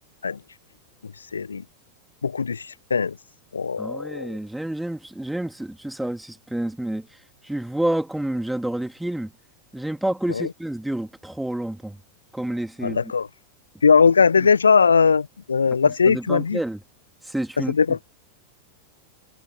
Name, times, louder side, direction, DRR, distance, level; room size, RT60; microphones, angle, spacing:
voice 1, 1.3-1.6 2.2-3.2 3.5-4.4 10.3-10.5 12.8-13.3 13.8-16.6 17.7-18.0, left 5 dB, 75° left, 1.2 m, -19 dB
voice 2, 3.8-7.1 7.4-9.3 9.7-12.0 12.3-13.0 16.1-16.8 17.3-17.7, right 1 dB, 5° right, 2.4 m, -28 dB
figure-of-eight pair, 90°, 0 cm